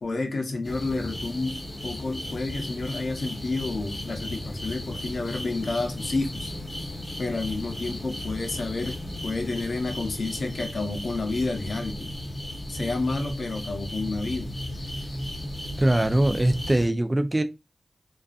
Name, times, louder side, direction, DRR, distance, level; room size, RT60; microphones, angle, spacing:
voice 1, 0.0-6.5 7.2-12.1 12.7-15.3, left 3 dB, 80° left, 0.6 m, -30 dB
sound 1, 0.6-16.9, left 1 dB, 45° left, 0.8 m, -37 dB
sound 2, 3.7-16.7, equal, 90° right, 0.8 m, -40 dB
voice 2, 15.8-17.4, right 1 dB, 25° right, 0.4 m, -22 dB
2.5 x 2.3 x 2.3 m
wide cardioid pair, 60°, 0 cm